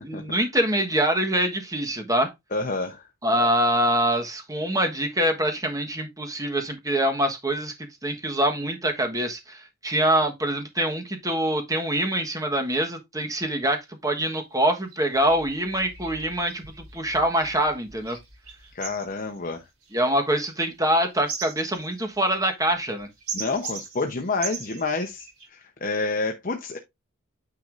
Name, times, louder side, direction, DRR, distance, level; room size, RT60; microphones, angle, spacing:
voice 1, 0.0-2.3 3.2-7.7 8.0-18.2 19.9-23.1, right 1 dB, 15° right, 1.3 m, -24 dB
voice 2, 2.5-3.0 18.7-19.6 23.3-26.8, left 3 dB, 40° left, 0.9 m, -28 dB
pajaritos hifi, 13.4-13.5 13.7-13.8 14.3-14.4 14.9-25.5, right 5 dB, 75° right, 3.2 m, -40 dB
9.3 x 5.4 x 2.6 m
head